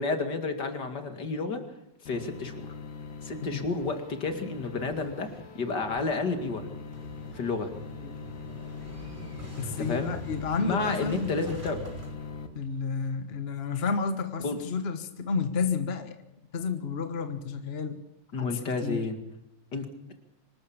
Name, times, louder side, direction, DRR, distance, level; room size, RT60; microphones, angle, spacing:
voice 1, 0.0-1.6 2.0-2.7 3.2-5.3 5.5-6.7 7.3-7.7 9.8-10.1 10.6-11.9 14.4-14.6 18.3-19.2 19.7-19.9, left 3 dB, 65° left, 7 dB, 2.9 m, -31 dB
sound 1, 2.1-12.5, left 5 dB, 85° left, 2.2 m, -42 dB
Motorcycle / Engine starting, 5.9-13.1, equal, 25° right, 4.4 m, -44 dB
voice 2, 9.6-11.4 12.5-16.1 16.5-18.0 18.3-19.0, left 5 dB, 35° left, 8 dB, 1.5 m, -31 dB
25.5 x 13.0 x 8.7 m, 0.83 s
omnidirectional pair, 2.0 m